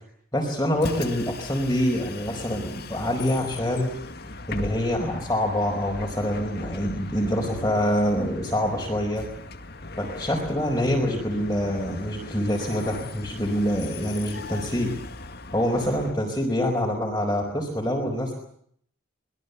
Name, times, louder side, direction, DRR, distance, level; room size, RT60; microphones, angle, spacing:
voice 1, 0.3-3.9 4.5-9.3 10.0-14.9 15.5-18.3, equal, 15° left, -2 dB, 4.9 m, -25 dB
Bus, 0.7-16.2, left 3 dB, 50° left, 2.0 m, -39 dB
25.5 x 21.0 x 8.3 m, 0.67 s
head